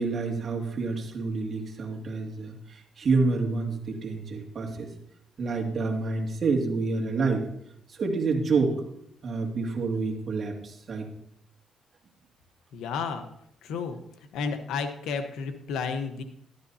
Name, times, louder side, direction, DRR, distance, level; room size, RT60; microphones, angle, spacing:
voice 1, 0.0-4.9 5.4-7.5 7.9-8.8 9.2-11.1, right 3 dB, 50° right, 0 dB, 2.3 m, -28 dB
voice 2, 12.7-13.3 13.6-14.0 14.3-16.2, left 5 dB, 80° left, 7 dB, 1.1 m, -31 dB
12.5 x 11.5 x 2.8 m, 0.74 s
cardioid pair, 90°, 0 cm